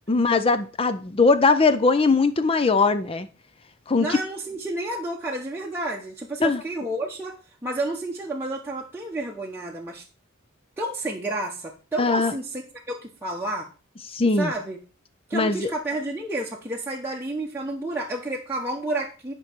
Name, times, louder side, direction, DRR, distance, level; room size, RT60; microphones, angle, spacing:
voice 1, 0.0-3.3 3.9-4.2 6.4-6.6 12.0-12.3 14.1-14.5 15.3-15.7, left 3 dB, 25° left, 0.5 m, -20 dB
voice 2, 4.0-7.4 7.6-10.0 10.8-12.6 12.9-13.7 14.4-14.8 15.3-19.3, right 2 dB, 10° right, 0.9 m, -30 dB
8.7 x 5.3 x 4.5 m
head